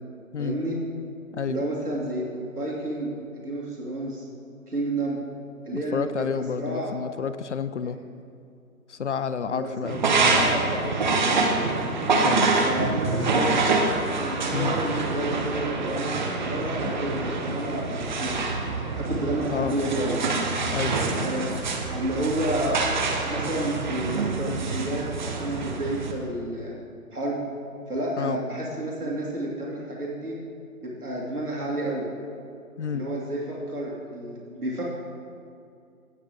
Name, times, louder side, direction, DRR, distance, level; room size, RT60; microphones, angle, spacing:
voice 1, 0.4-0.8 1.5-4.3 4.7-5.2 5.6-6.9 9.5-11.7 12.6-13.7 14.2-18.6 18.9-20.2 21.2-22.8 23.2-26.7 27.1-27.4 27.9-30.4 30.8-32.1 32.9-34.8, right 1 dB, 85° right, -4 dB, 2.3 m, -30 dB
voice 2, 5.7-8.0 8.9-10.5 12.2-12.7 14.5-14.8 16.8-16.9 19.5-19.8 20.7-21.0 28.2-28.4 32.8-33.1, left 6 dB, 55° left, 13 dB, 0.5 m, -30 dB
sound 1, 9.9-26.1, right 3 dB, 30° right, 0.9 m, -26 dB
17.0 x 6.7 x 3.5 m, 2.5 s
figure-of-eight pair, 140°, 44 cm